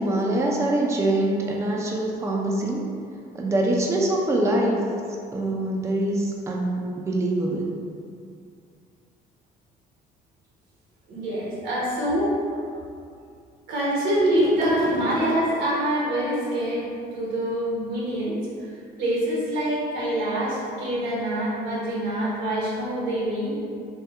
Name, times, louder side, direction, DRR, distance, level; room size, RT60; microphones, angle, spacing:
voice 1, 0.0-2.9 3.3-4.9 5.3-7.7, right 1 dB, 15° right, -2 dB, 0.4 m, -24 dB
voice 2, 11.1-12.3 13.7-18.7 19.0-23.6, right 1 dB, 85° right, -6 dB, 1.2 m, -25 dB
3.6 x 2.2 x 4.2 m, 2.4 s
cardioid pair, 110°, 17 cm